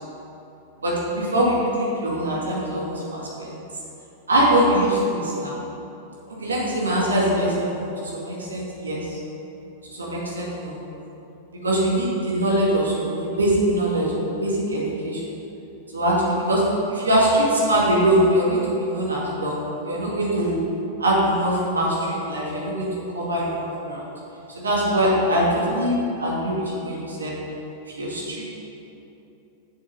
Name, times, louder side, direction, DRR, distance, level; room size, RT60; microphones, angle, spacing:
voice 1, 0.8-3.6 4.3-5.6 6.4-7.9 8.1-9.0 9.9-10.8 11.6-14.1 14.4-15.2 15.9-16.6 16.9-19.6 19.8-20.6 21.0-22.9 23.1-24.0 24.6-27.3 28.0-28.5, right 1 dB, 85° right, -4 dB, 2.1 m, -22 dB
7.1 x 6.9 x 5.4 m, 2.9 s
hypercardioid pair, 100°, 0 cm